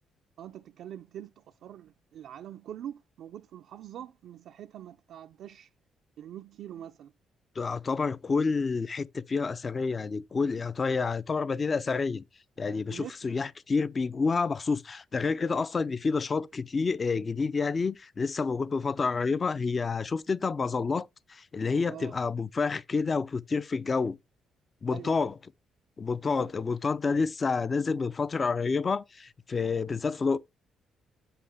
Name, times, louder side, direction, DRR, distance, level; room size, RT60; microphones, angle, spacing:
voice 1, 0.4-5.7 6.2-7.1 12.9-13.1 21.9-22.1 24.9-25.3 26.3-26.5, right 10 dB, 75° right, 0.4 m, -44 dB
voice 2, 7.6-12.2 12.6-24.2 24.8-25.3 26.0-30.4, left 4 dB, 35° left, 0.4 m, -29 dB
7.6 x 5.7 x 3.3 m
cardioid pair, 90°, 0 cm